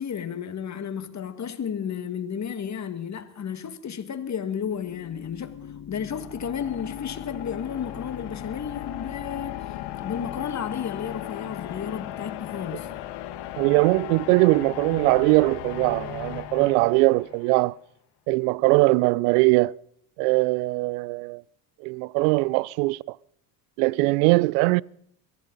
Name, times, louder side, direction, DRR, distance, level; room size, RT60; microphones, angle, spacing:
voice 1, 0.0-9.7 10.0-12.9, left 8 dB, 35° left, 2.0 m, -33 dB
sound 1, 4.5-17.6, left 12 dB, 55° left, 1.7 m, -37 dB
voice 2, 13.6-17.7 18.3-19.7 20.2-21.4 21.8-23.2 23.8-24.8, right 24 dB, 75° right, 0.5 m, -21 dB
23.0 x 15.0 x 4.0 m
hypercardioid pair, 80°, 47 cm